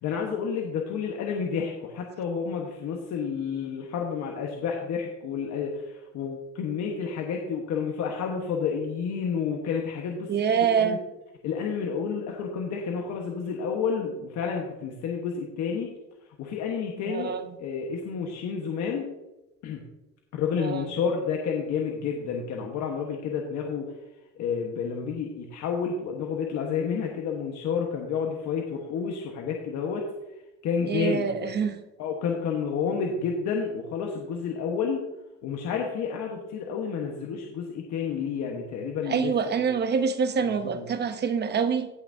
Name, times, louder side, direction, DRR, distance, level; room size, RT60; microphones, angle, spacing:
voice 1, 0.0-11.0 11.4-15.9 16.2-19.0 19.6-19.8 20.3-23.9 24.4-30.1 30.6-31.6 32.0-35.0 35.4-39.7 40.6-40.9, left 6 dB, 55° left, 0 dB, 1.3 m, -30 dB
voice 2, 10.3-11.0 17.0-17.5 20.6-20.8 30.8-31.8 39.1-41.9, right 6 dB, 30° right, 9 dB, 0.9 m, -26 dB
17.5 x 6.0 x 2.7 m, 1.0 s
cardioid pair, 130°, 32 cm